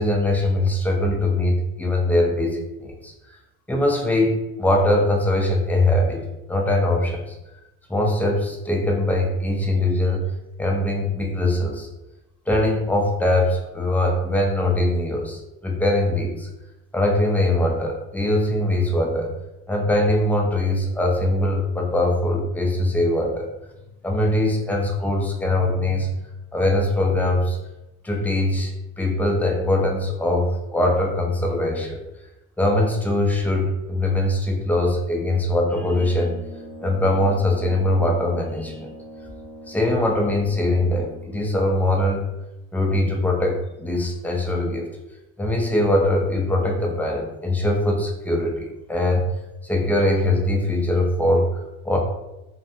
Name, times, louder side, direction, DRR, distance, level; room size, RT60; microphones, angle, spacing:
voice 1, 0.0-3.1 3.7-6.2 6.5-7.4 7.9-10.3 10.6-11.9 12.5-16.5 16.9-19.3 19.7-23.5 24.0-26.1 26.5-27.6 28.0-32.0 32.6-36.4 36.8-38.9 39.7-42.2 42.7-44.9 45.4-49.3 49.6-52.0, left 1 dB, 5° left, 0 dB, 0.3 m, -22 dB
Brass instrument, 35.7-41.5, right 1 dB, 75° left, 0.7 m, -42 dB
2.6 x 2.2 x 2.7 m, 0.95 s
supercardioid pair, 105°, 37 cm